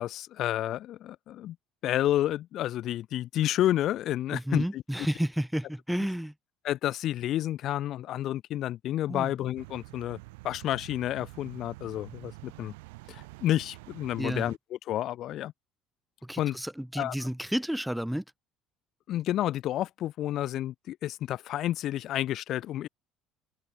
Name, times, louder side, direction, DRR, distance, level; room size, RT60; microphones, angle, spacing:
voice 1, 0.0-1.6 1.8-4.8 6.6-10.2 10.4-12.7 13.1-14.6 14.9-15.5 16.4-16.6 17.0-17.1 19.1-22.9, left 13 dB, 60° left, 0.6 m, -30 dB
voice 2, 4.3-6.3 9.1-9.3 14.2-14.5 16.2-18.2, equal, 5° right, 3.0 m, -31 dB
sound 1, 9.6-14.6, right 24 dB, 80° right, 5.0 m, -47 dB
hypercardioid pair, 65°, 0 cm